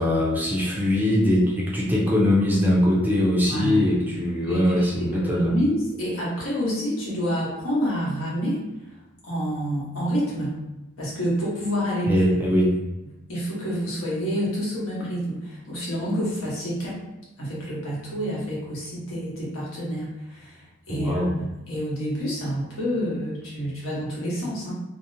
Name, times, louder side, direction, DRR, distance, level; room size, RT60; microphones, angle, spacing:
voice 1, 0.0-5.5 12.1-12.8 20.9-21.3, left 1 dB, 10° right, -5 dB, 0.5 m, -21 dB
voice 2, 3.5-3.9 4.5-8.6 9.2-10.6 11.0-12.3 13.3-17.0 17.4-20.6 20.9-24.7, equal, 80° left, -6 dB, 1.1 m, -28 dB
2.7 x 2.0 x 2.6 m, 1.0 s
head